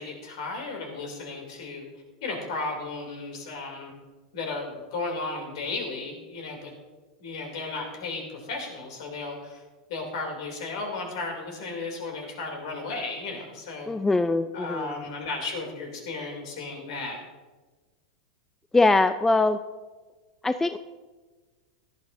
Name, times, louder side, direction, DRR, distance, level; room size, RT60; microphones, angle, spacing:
voice 1, 0.0-1.8 2.2-3.9 4.3-6.7 7.2-9.6 9.9-13.9 14.5-17.2, left 3 dB, 60° left, 2 dB, 2.8 m, -34 dB
voice 2, 13.9-15.0 18.7-19.6 20.4-20.8, left 3 dB, 10° left, 12 dB, 0.4 m, -22 dB
17.5 x 12.0 x 2.6 m, 1.3 s
figure-of-eight pair, 90°, 3 cm